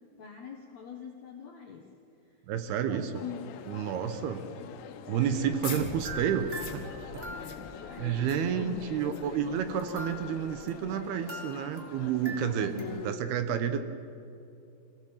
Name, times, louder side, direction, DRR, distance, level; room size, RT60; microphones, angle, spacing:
voice 1, 0.2-1.9 2.9-3.5 4.0-4.8 5.2-5.6 7.3-10.1 12.7-13.4, left 5 dB, 70° left, 1 dB, 1.7 m, -43 dB
voice 2, 2.5-3.2 3.7-4.4 5.1-6.8 7.1-7.2 8.0-12.7 13.0-13.8, right 8 dB, 75° right, 9 dB, 2.7 m, -30 dB
Crowd, 3.2-13.1, left 9 dB, 85° left, 3.1 m, -46 dB
sound 1, 5.3-10.7, left 4 dB, 50° left, 1.2 m, -44 dB
sound 2, 6.0-7.9 9.8-12.8, right 3 dB, 40° right, 1.0 m, -43 dB
26.0 x 17.0 x 7.3 m, 2.6 s
omnidirectional pair, 5.0 m